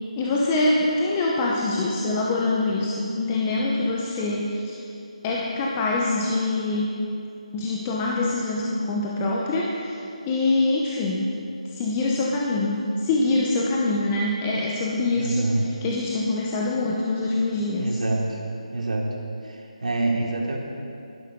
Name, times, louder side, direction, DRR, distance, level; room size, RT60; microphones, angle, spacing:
voice 1, 0.2-4.8 5.2-6.9 7.5-11.4 11.7-18.0, left 2 dB, 15° left, -3 dB, 0.7 m, -24 dB
voice 2, 15.1-15.6 17.8-18.4 18.7-19.2 19.4-20.6, right 2 dB, 70° right, -2 dB, 2.8 m, -26 dB
12.5 x 11.0 x 5.3 m, 2.6 s
figure-of-eight pair, 165°, 4 cm